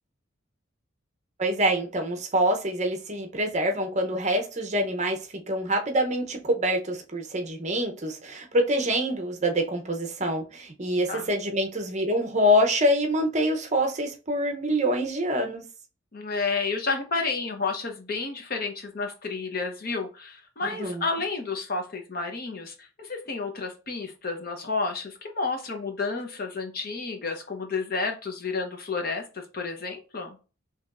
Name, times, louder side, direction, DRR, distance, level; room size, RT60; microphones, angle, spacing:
voice 1, 1.4-15.6 20.7-21.0, equal, 35° right, 0.7 m, -25 dB
voice 2, 16.1-30.4, left 4 dB, 45° left, 0.8 m, -31 dB
4.9 x 3.0 x 2.4 m
head